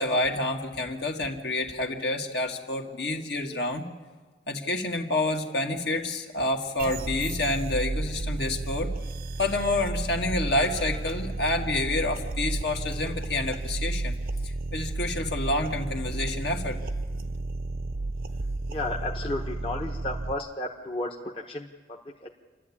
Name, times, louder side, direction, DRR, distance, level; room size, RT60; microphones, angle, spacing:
voice 1, 0.0-3.8 4.5-8.9 9.4-14.1 14.4-16.8 17.1-17.2, left 2 dB, 60° left, 2 dB, 2.0 m, -28 dB
sound 1, 6.8-20.3, right 2 dB, 55° right, 0.7 m, -32 dB
voice 2, 18.7-22.3, left 2 dB, 30° left, 0 dB, 1.1 m, -33 dB
29.0 x 12.0 x 8.6 m, 1.3 s
head